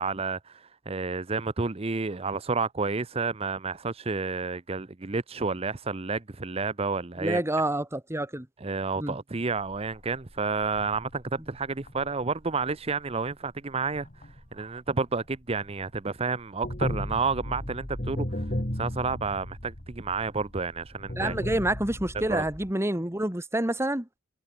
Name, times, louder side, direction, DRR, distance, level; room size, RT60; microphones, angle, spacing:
voice 1, 0.0-7.4 8.6-18.4 18.7-21.3 22.3-22.4, right 4 dB, 30° right, 0.7 m, -30 dB
voice 2, 7.2-8.5 9.0-9.2 21.2-24.1, right 1 dB, 15° right, 1.5 m, -28 dB
sound 1, 9.6-16.0 16.2-22.7, left 1 dB, 40° left, 2.9 m, -36 dB
head